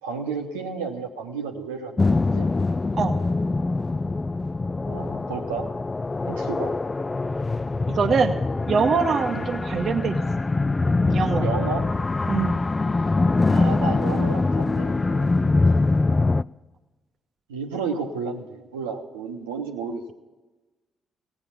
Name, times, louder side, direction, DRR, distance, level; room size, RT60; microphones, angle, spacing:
voice 1, 0.0-2.1 2.3-2.5 4.9-5.7 6.3-6.7 9.3-9.5 11.4-11.9 13.5-15.6 17.5-20.0, right 5 dB, 80° right, 2 dB, 0.8 m, -32 dB
sound 1, 2.0-16.4, left 3 dB, 30° left, 0.3 m, -23 dB
voice 2, 7.9-8.4 8.7-10.2 11.1-11.4 12.3-12.5, right 5 dB, 50° right, 6 dB, 0.8 m, -23 dB
17.0 x 8.9 x 5.7 m, 1.2 s
figure-of-eight pair, 40°, 0 cm